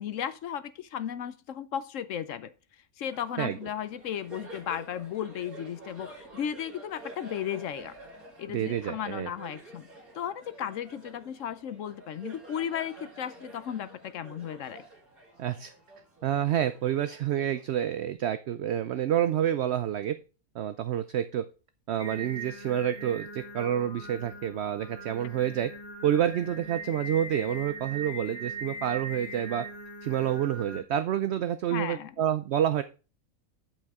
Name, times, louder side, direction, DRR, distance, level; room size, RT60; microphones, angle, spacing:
voice 1, 0.0-2.5 3.0-7.9 8.4-9.9 10.1-14.8 31.7-32.2, left 9 dB, 65° left, 14 dB, 0.9 m, -35 dB
Laughter, 3.1-18.1, right 2 dB, 80° right, 3.5 m, -49 dB
voice 2, 8.5-9.3 15.4-15.7 16.2-20.1 20.5-21.4 21.9-25.7 26.0-29.6 30.0-32.8, right 10 dB, 65° right, 11 dB, 0.7 m, -28 dB
Singing, 22.0-30.8, right 1 dB, 25° left, 2.2 m, -41 dB
12.0 x 5.3 x 3.6 m, 0.33 s
omnidirectional pair, 1.5 m